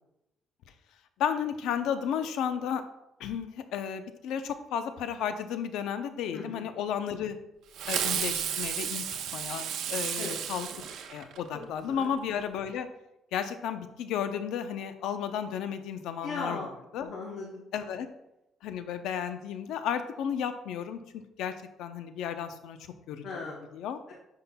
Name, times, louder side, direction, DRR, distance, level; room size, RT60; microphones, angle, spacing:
voice 1, 1.2-2.8 3.2-7.4 7.9-10.7 11.1-12.9 13.3-16.7 16.9-17.1 17.7-18.1 18.6-21.5 21.8-22.8 23.1-23.3 23.7-24.0, left 8 dB, 85° left, 9 dB, 0.6 m, -33 dB
voice 2, 6.3-6.6 10.2-10.4 11.8-12.1 16.2-17.6 23.2-23.8 24.1-24.2, left 4 dB, 60° left, -2 dB, 0.9 m, -38 dB
Fireworks, 7.8-11.6, right 9 dB, 70° right, 0.6 m, -33 dB
9.8 x 5.6 x 2.2 m, 0.90 s
cardioid pair, 180°, 0 cm